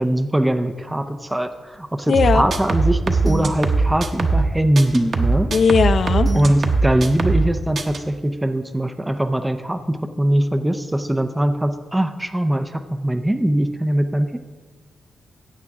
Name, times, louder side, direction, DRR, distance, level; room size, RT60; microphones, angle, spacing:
voice 1, 0.0-5.5 6.3-14.4, right 1 dB, 10° right, 7 dB, 0.6 m, -21 dB
voice 2, 2.1-2.5 5.5-6.3, left 5 dB, 55° left, 12 dB, 0.5 m, -17 dB
sound 1, 2.1-4.5 4.8-7.5 7.8-8.0, right 3 dB, 50° right, 1.0 m, -20 dB
15.5 x 8.9 x 3.6 m, 1.4 s
cardioid pair, 110°, 0 cm